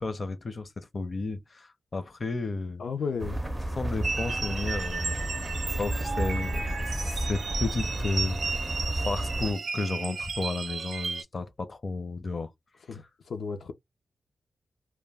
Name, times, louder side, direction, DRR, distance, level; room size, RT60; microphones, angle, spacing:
voice 1, 0.0-2.8 3.8-5.3 5.7-12.5 12.9-13.0, left 3 dB, 40° left, 0.5 m, -33 dB
voice 2, 2.8-3.4 12.9-13.7, left 5 dB, 85° left, 0.5 m, -33 dB
sound 1, 3.2-9.5, right 1 dB, 10° right, 0.4 m, -32 dB
sound 2, 4.0-11.2, right 4 dB, 65° right, 0.5 m, -34 dB
2.1 x 2.1 x 3.3 m
wide cardioid pair, 105°, 0 cm